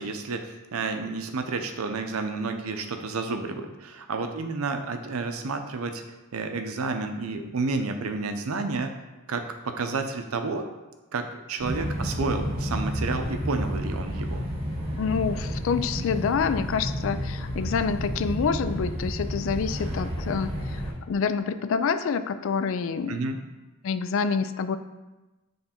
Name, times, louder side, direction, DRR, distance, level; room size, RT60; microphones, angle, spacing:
voice 1, 0.0-6.0 6.3-8.9 9.3-10.7 11.1-14.4 23.1-23.4, right 3 dB, 90° right, 6 dB, 0.6 m, -30 dB
sound 1, 11.6-20.9, equal, 25° right, 1.9 m, -31 dB
voice 2, 15.0-20.8 21.1-23.2 23.8-24.8, left 6 dB, 65° left, 11 dB, 0.3 m, -27 dB
6.7 x 3.3 x 4.3 m, 1.1 s
head